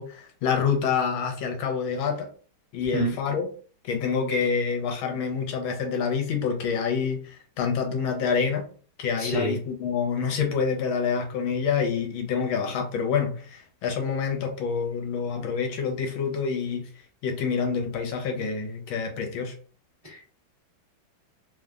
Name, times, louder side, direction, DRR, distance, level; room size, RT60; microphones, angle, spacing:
voice 1, 0.0-2.3 2.7-3.5 3.8-8.7 9.0-16.9 17.2-19.6, left 6 dB, 80° left, 3 dB, 1.4 m, -27 dB
voice 2, 9.2-9.5 20.0-20.3, right 2 dB, 35° right, -5 dB, 0.6 m, -28 dB
3.3 x 2.1 x 2.3 m, 0.42 s
omnidirectional pair, 2.2 m